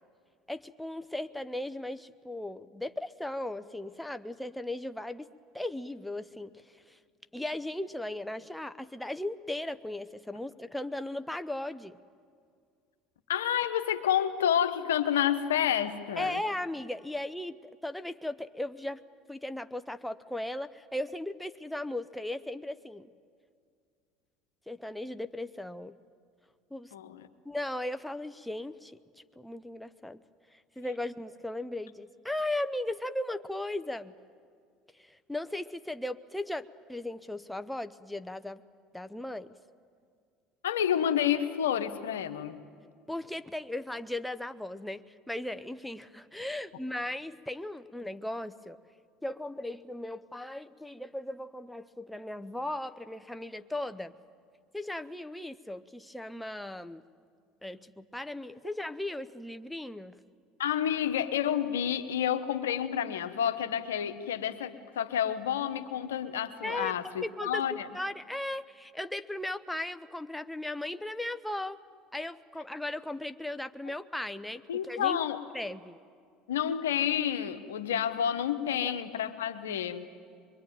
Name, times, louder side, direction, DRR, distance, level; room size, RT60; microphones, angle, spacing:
voice 1, 0.5-5.3 5.5-6.5 6.9-7.0 7.3-12.0 16.2-19.0 19.3-23.1 24.7-26.0 26.7-26.9 27.4-29.0 29.4-30.2 30.8-34.1 35.0-38.6 38.9-39.5 43.1-48.8 49.2-54.1 54.7-57.0 57.6-60.2 66.6-71.8 72.1-75.2 75.5-76.0 78.8-78.9, left 1 dB, 5° left, 9 dB, 0.8 m, -37 dB
voice 2, 13.3-16.4 26.9-27.3 40.6-42.6 60.6-67.9 74.7-75.4 76.5-80.1, left 9 dB, 90° left, 9 dB, 1.1 m, -29 dB
24.0 x 22.5 x 9.2 m, 2.2 s
hypercardioid pair, 80°, 0 cm